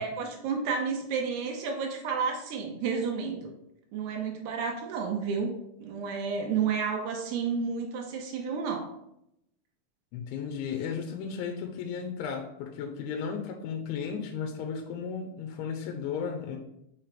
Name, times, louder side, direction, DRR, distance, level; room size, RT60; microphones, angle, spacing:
voice 1, 0.0-3.5 3.9-5.5 5.8-8.9, right 5 dB, 75° right, 2 dB, 2.6 m, -31 dB
voice 2, 10.1-16.6, left 6 dB, 85° left, 2 dB, 3.0 m, -34 dB
6.1 x 5.9 x 3.3 m, 0.81 s
omnidirectional pair, 5.3 m